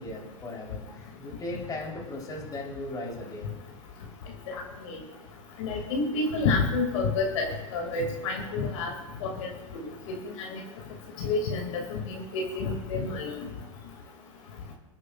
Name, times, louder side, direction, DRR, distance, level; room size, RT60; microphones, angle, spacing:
voice 1, 0.0-3.5 5.7-5.8, left 2 dB, 20° left, -2 dB, 4.1 m, -38 dB
voice 2, 5.6-8.9 9.2-9.8 10.1-10.2 10.5-10.6 11.2-13.4, left 3 dB, 65° left, 0 dB, 2.8 m, -29 dB
27.5 x 9.7 x 2.6 m, 1.1 s
hypercardioid pair, 110°, 17 cm